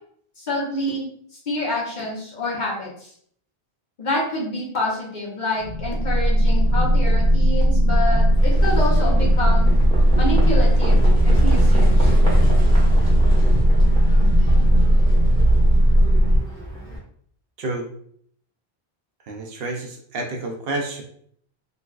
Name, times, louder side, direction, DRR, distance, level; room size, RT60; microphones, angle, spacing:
voice 1, 0.4-1.1 1.5-2.9 4.0-9.7 10.2-12.1, left 1 dB, 50° left, -4 dB, 1.0 m, -27 dB
sound 1, 5.6-16.4, right 1 dB, 75° left, 0.9 m, -16 dB
Livestock farm animals working animals, 8.3-17.0, right 1 dB, 5° left, 1.1 m, -30 dB
voice 2, 19.3-21.0, right 2 dB, 70° right, 2 dB, 0.8 m, -29 dB
3.8 x 2.3 x 2.3 m, 0.62 s
omnidirectional pair, 1.1 m